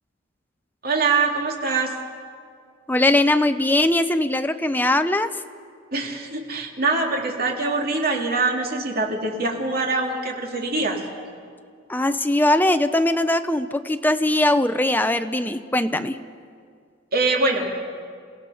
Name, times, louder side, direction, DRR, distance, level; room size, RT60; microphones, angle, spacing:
voice 1, 0.8-1.9 5.9-11.0 17.1-17.7, right 3 dB, 50° right, 1 dB, 2.5 m, -23 dB
voice 2, 2.9-5.4 11.9-16.2, left 1 dB, 10° left, 9 dB, 0.6 m, -20 dB
28.0 x 17.0 x 5.6 m, 2.2 s
head